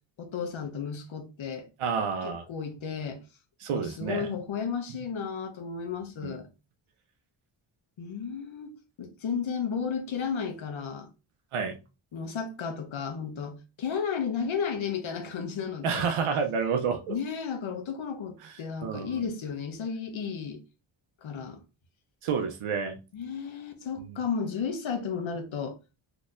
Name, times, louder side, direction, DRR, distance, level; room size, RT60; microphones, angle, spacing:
voice 1, 0.2-1.7 2.2-3.2 3.7-6.5 8.0-8.7 9.0-11.1 12.1-16.1 17.1-20.6 21.2-21.6 23.1-25.8, left 6 dB, 70° left, 0.9 m, -33 dB
voice 2, 1.8-2.4 3.6-4.3 6.2-6.4 11.5-11.8 15.8-17.1 18.4-18.5 18.8-19.2 22.2-23.0 24.1-24.2, right 6 dB, 80° right, 0.6 m, -29 dB
4.1 x 2.9 x 2.4 m
wide cardioid pair, 120°, 49 cm